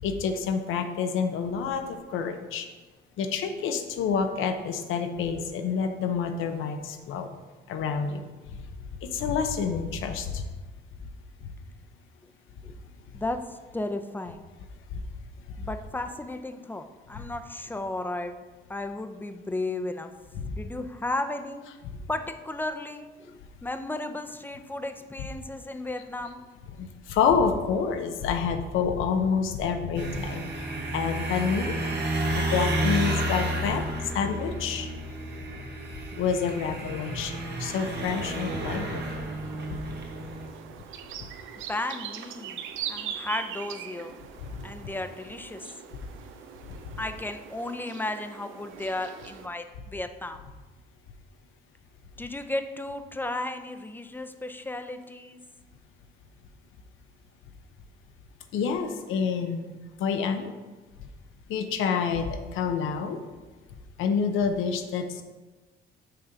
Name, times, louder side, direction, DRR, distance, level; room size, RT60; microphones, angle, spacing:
voice 1, 0.0-2.7 3.2-7.3 7.7-8.3 9.0-10.4 14.9-15.0 17.2-17.3 20.4-20.5 26.8-30.4 30.9-31.8 32.3-33.8 34.1-34.9 36.1-39.3 44.5-44.6 46.7-46.8 58.5-59.7 60.0-60.5 61.5-63.2 64.0-65.2, left 6 dB, 85° left, 6 dB, 0.8 m, -28 dB
voice 2, 13.1-14.5 15.6-18.4 18.7-20.1 20.6-21.6 22.1-26.4 41.7-44.1 44.6-45.7 47.0-50.4 52.2-55.4, left 2 dB, 10° left, 7 dB, 0.6 m, -34 dB
sound 1, 30.0-40.5, right 1 dB, 55° right, 1.3 m, -31 dB
sound 2, 38.0-49.5, right 9 dB, 85° right, 0.5 m, -42 dB
6.7 x 3.8 x 5.8 m, 1.2 s
cardioid pair, 90°, 20 cm